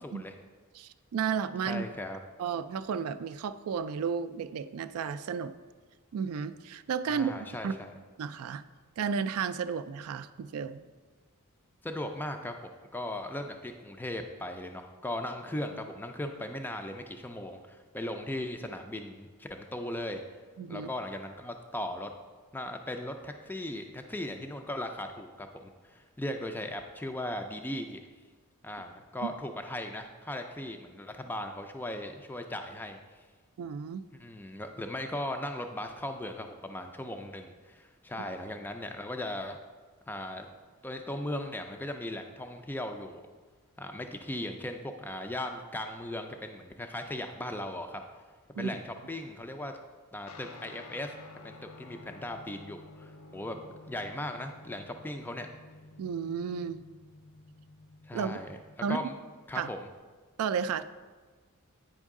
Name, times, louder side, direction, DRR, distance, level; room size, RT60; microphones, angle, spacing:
voice 1, 0.0-0.4 1.7-2.2 7.1-7.9 11.8-20.2 20.7-22.1 22.5-28.0 28.6-33.2 34.1-39.6 40.1-40.5 40.8-43.2 43.8-48.0 48.5-49.7 50.1-51.1 51.4-53.6 53.9-55.5 58.0-58.5 58.9-59.1 59.5-59.9, left 1 dB, 10° left, 5 dB, 0.3 m, -38 dB
voice 2, 0.8-1.9 2.4-5.5 6.1-7.7 8.2-8.6 9.0-10.8 20.6-20.9 29.2-29.3 33.6-34.0 48.6-48.7 56.0-56.8 58.1-58.4 58.8-59.1 59.6-59.7 60.4-60.8, right 6 dB, 70° right, 12 dB, 0.3 m, -33 dB
Guitar, 50.3-60.0, left 2 dB, 70° left, 0.5 m, -52 dB
8.9 x 5.3 x 3.6 m, 1.4 s
head